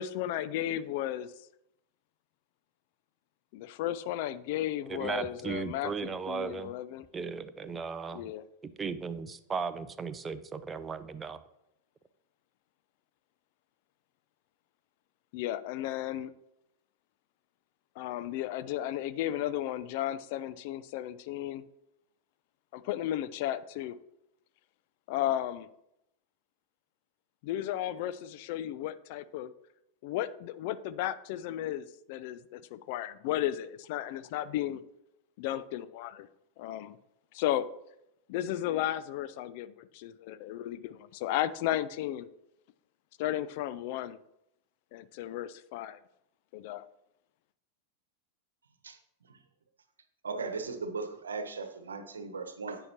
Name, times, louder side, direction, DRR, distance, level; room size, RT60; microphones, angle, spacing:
voice 1, 0.0-1.3 3.5-7.1 8.1-8.4 15.3-16.3 18.0-21.6 22.7-24.0 25.1-25.7 27.4-29.5 30.0-34.8 35.4-36.3 36.6-37.0 37.3-37.7 38.3-42.3 43.2-44.2 44.9-46.0 46.5-46.8, left 12 dB, 50° left, 15 dB, 0.4 m, -34 dB
voice 2, 4.9-6.7 7.1-8.2 8.6-11.4, right 5 dB, 15° right, 11 dB, 0.5 m, -36 dB
voice 3, 50.2-52.8, right 4 dB, 70° right, 8 dB, 1.0 m, -37 dB
10.5 x 8.8 x 3.0 m, 0.82 s
figure-of-eight pair, 90°, 0 cm